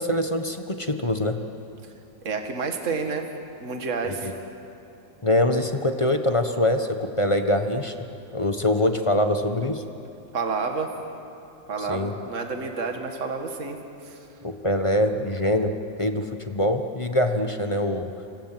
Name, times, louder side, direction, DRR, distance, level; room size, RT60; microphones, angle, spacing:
voice 1, 0.0-1.4 4.0-4.3 5.2-7.9 8.3-9.8 11.8-12.1 14.4-18.1, left 1 dB, 20° left, 6 dB, 0.9 m, -24 dB
voice 2, 2.2-3.3 3.6-4.3 10.3-10.9 11.7-13.8 14.1-14.2, right 4 dB, 40° right, 4 dB, 2.2 m, -29 dB
29.0 x 25.0 x 7.6 m, 2.7 s
omnidirectional pair, 2.1 m